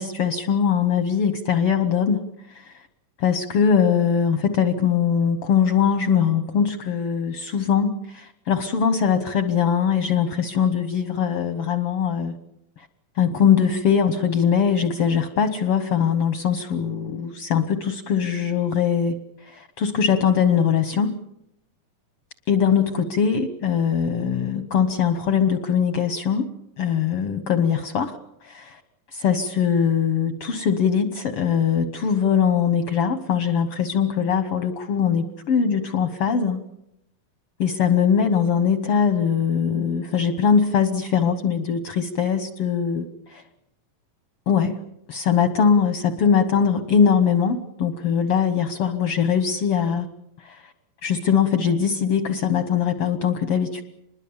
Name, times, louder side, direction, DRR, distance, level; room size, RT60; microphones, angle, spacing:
voice 1, 0.0-2.8 3.2-12.4 12.8-12.9 13.1-21.2 22.5-26.5 26.8-28.8 29.1-36.6 37.6-43.4 44.5-44.8 45.1-50.1 50.4-50.7 51.0-53.8, left 7 dB, 75° left, 10 dB, 1.3 m, -21 dB
26.0 x 21.5 x 7.1 m, 0.83 s
omnidirectional pair, 4.0 m